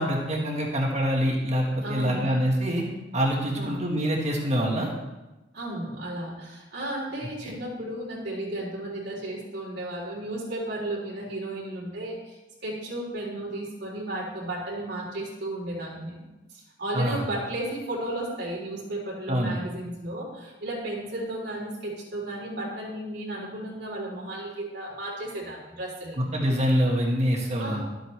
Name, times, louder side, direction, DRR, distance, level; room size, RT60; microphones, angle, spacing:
voice 1, 0.0-2.8 3.1-4.9 7.4-7.5 16.9-17.2 19.3-19.5 26.2-27.8, equal, 40° right, -1 dB, 1.5 m, -25 dB
voice 2, 1.8-2.3 3.5-3.9 5.5-26.2 27.6-27.8, right 1 dB, 65° right, -4 dB, 3.3 m, -34 dB
12.0 x 7.9 x 3.2 m, 1.0 s
head